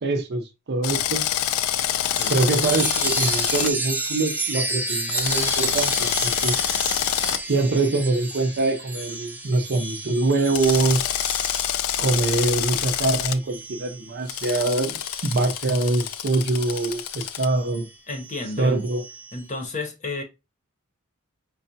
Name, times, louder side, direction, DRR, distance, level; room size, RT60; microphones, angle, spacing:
voice 1, 0.0-1.2 2.3-6.6 7.4-11.1 12.0-17.9 18.6-19.0, right 3 dB, 50° right, 0.6 m, -24 dB
Drill, 0.8-3.7 5.1-7.4 10.5-13.4 14.3-17.5, left 10 dB, 70° left, 0.3 m, -26 dB
voice 2, 2.0-2.3 18.1-18.8 19.3-20.2, left 2 dB, 35° left, 0.8 m, -32 dB
Chime, 2.1-16.1 16.6-19.4, right 2 dB, 10° right, 0.5 m, -32 dB
4.6 x 2.2 x 2.6 m
head